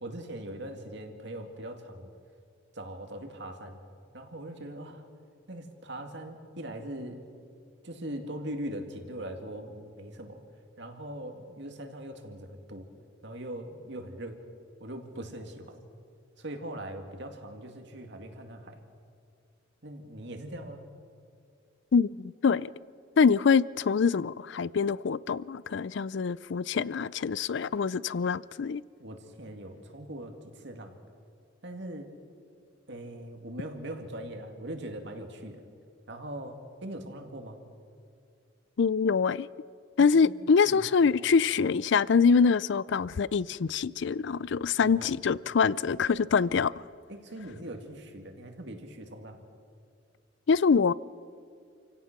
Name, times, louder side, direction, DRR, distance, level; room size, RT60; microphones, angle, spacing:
voice 1, 0.0-2.1 2.7-3.8 4.1-5.0 5.5-7.2 7.8-10.4 10.8-12.9 13.2-14.4 14.8-15.8 16.4-18.8 19.8-20.8 29.0-31.0 31.6-32.1 32.9-35.6 36.1-37.6 40.0-40.3 40.7-40.8 44.8-45.1 47.1-49.4, right 1 dB, 60° right, 2.3 m, -41 dB
voice 2, 21.9-22.7 23.2-28.8 38.8-39.5 40.0-46.7 50.5-50.9, left 5 dB, 65° left, 0.4 m, -24 dB
28.5 x 17.0 x 6.0 m
head